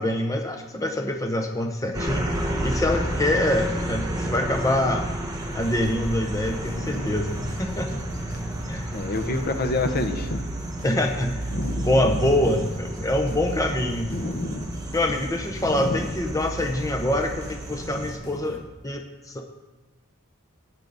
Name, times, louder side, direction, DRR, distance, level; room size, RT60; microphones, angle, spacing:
voice 1, 0.0-2.3 2.6-5.1 5.5-8.0 8.7-8.9 10.8-11.4 11.8-14.1 14.9-19.5, left 1 dB, 15° left, 3 dB, 0.9 m, -25 dB
sound 1, 1.9-18.1, right 1 dB, 15° right, 1.5 m, -31 dB
sound 2, 5.4-18.7, equal, 70° left, 1.6 m, -45 dB
voice 2, 6.7-7.1 8.9-10.4 11.5-12.2 14.1-14.7 15.7-16.0 17.9-18.0 18.3-18.4, left 2 dB, 45° left, 6 dB, 1.0 m, -28 dB
15.0 x 9.4 x 4.1 m, 1.1 s
head